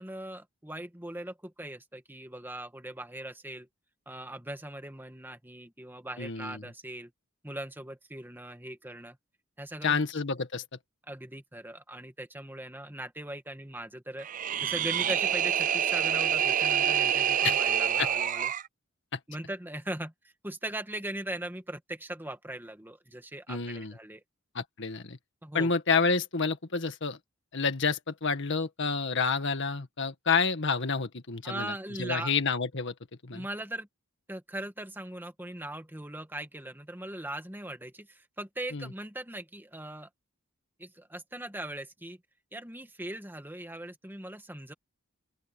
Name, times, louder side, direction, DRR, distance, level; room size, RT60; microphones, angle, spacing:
voice 1, 0.0-3.7 4.1-7.1 7.4-9.2 9.6-10.0 11.1-14.3 14.6-18.5 19.3-20.1 20.4-24.2 25.4-25.7 31.4-32.3 33.3-33.9 34.3-40.1 40.8-42.2 42.5-44.7, right 1 dB, 10° right, 1.8 m, -40 dB
voice 2, 6.2-6.6 9.8-10.6 17.4-17.6 18.0-18.1 19.1-19.2 23.5-23.9 24.6-25.2 25.5-27.2 27.5-31.7 32.0-32.9 33.2-33.5 38.7-38.9, left 5 dB, 60° left, 1.8 m, -29 dB
sound 1, 14.2-18.7, right 9 dB, 40° right, 0.4 m, -27 dB
open air
head